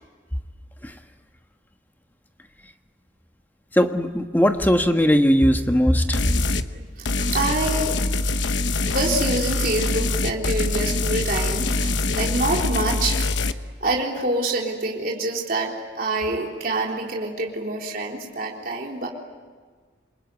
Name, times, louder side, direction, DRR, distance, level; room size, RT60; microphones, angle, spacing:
voice 1, 3.7-6.2, equal, 10° left, 6 dB, 1.3 m, -19 dB
sound 1, 6.1-6.7 7.1-13.5, left 3 dB, 80° left, 1.0 m, -24 dB
voice 2, 6.7-8.0 8.9-13.1 13.8-19.1, right 2 dB, 50° right, -2 dB, 3.8 m, -26 dB
27.5 x 22.5 x 9.5 m, 1.5 s
head